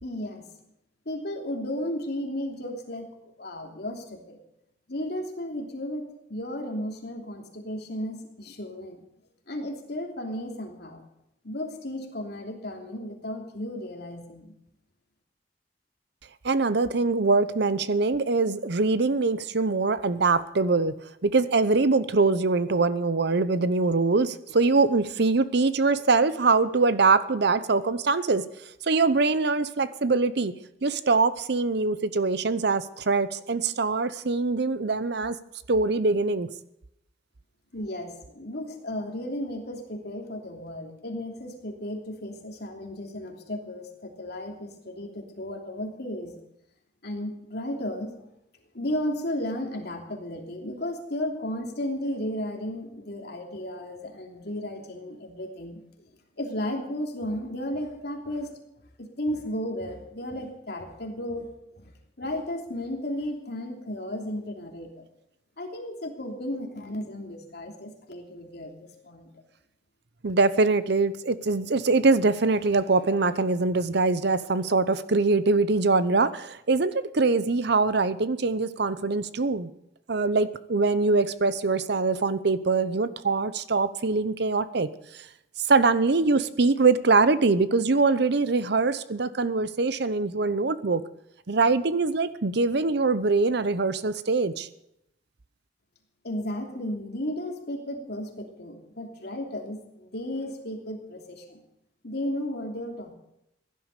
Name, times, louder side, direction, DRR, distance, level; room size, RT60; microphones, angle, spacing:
voice 1, 0.0-0.4 1.0-3.1 3.4-4.4 4.9-9.0 9.5-11.0 11.4-14.5 37.7-46.4 47.0-48.1 48.7-55.8 56.4-58.5 59.0-61.5 61.8-61.9 62.2-65.0 65.6-69.3 96.2-101.6 102.0-103.1, left 1 dB, 60° left, 1 dB, 3.0 m, -34 dB
voice 2, 16.4-21.0 21.2-28.4 28.8-30.5 30.8-35.4 35.7-36.5 70.2-79.7 80.1-84.9 85.1-85.2 85.7-91.0 91.5-94.7, right 3 dB, 60° right, 14 dB, 0.8 m, -23 dB
16.0 x 11.5 x 6.7 m, 0.82 s
head